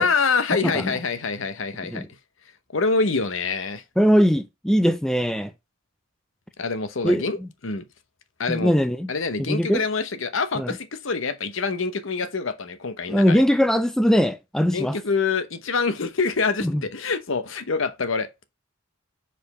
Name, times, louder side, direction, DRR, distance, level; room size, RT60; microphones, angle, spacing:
voice 1, 0.0-2.0 2.7-3.8 6.6-7.8 8.4-8.7 9.1-13.4 14.7-18.3, left 4 dB, 65° left, 0.9 m, -25 dB
voice 2, 4.0-5.5 7.0-7.2 8.5-9.1 9.5-9.8 10.6-10.7 13.1-15.0 16.6-16.8, equal, ahead, 0.4 m, -20 dB
5.1 x 4.5 x 5.4 m
head